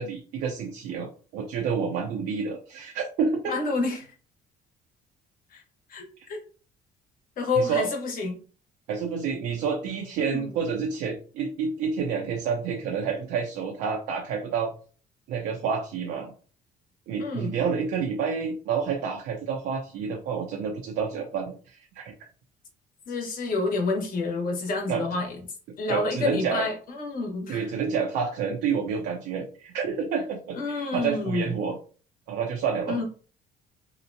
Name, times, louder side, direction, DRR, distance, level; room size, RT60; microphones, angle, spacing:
voice 1, 0.0-3.6 7.6-7.9 8.9-14.7 15.3-16.3 17.1-22.1 24.9-25.0 25.9-26.6 27.5-31.8 32.3-33.0, right 6 dB, 80° right, 2 dB, 0.5 m, -29 dB
voice 2, 3.5-4.1 5.5-5.6 5.9-6.4 7.4-8.4 10.2-10.5 17.2-17.6 23.1-25.4 25.8-27.7 30.5-31.5 32.9-33.0, left 3 dB, 55° left, 1 dB, 1.1 m, -29 dB
2.8 x 2.1 x 2.6 m, 0.39 s
cardioid pair, 110°, 17 cm